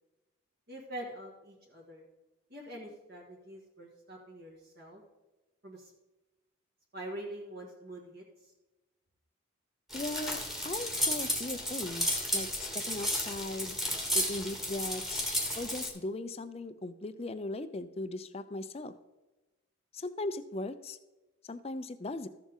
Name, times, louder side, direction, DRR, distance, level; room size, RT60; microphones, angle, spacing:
voice 1, 0.7-2.0 2.5-5.0 5.6-5.9 6.9-8.5, right 1 dB, 45° right, -3 dB, 1.8 m, -45 dB
voice 2, 9.9-13.8 14.1-15.2 15.5-18.9 19.9-21.0 21.4-22.3, left 2 dB, 30° left, 12 dB, 0.5 m, -38 dB
sound 1, 9.9-15.9, left 1 dB, ahead, 1.4 m, -33 dB
14.0 x 7.2 x 3.7 m, 1.1 s
head